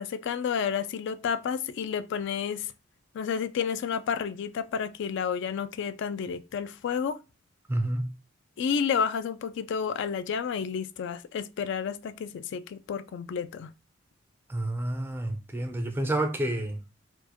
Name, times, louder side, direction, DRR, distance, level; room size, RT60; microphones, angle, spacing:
voice 1, 0.0-2.7 3.1-7.2 8.6-13.7, left 7 dB, 65° left, 0.3 m, -30 dB
voice 2, 7.7-8.1 14.5-16.8, right 1 dB, 10° right, 0.4 m, -29 dB
4.4 x 2.1 x 2.9 m
head